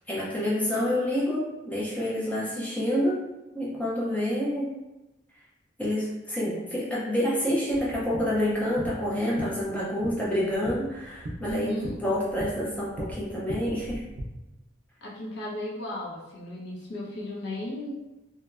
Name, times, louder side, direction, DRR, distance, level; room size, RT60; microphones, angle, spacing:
voice 1, 0.1-3.2 3.5-4.7 5.8-11.7 12.0-14.0, equal, 10° left, -7 dB, 0.4 m, -28 dB
sound 1, 7.7-14.2, equal, 50° right, 0.4 m, -40 dB
voice 2, 11.4-12.0 15.0-17.9, left 1 dB, 65° left, -5 dB, 0.7 m, -35 dB
2.9 x 2.1 x 2.3 m, 1.0 s
head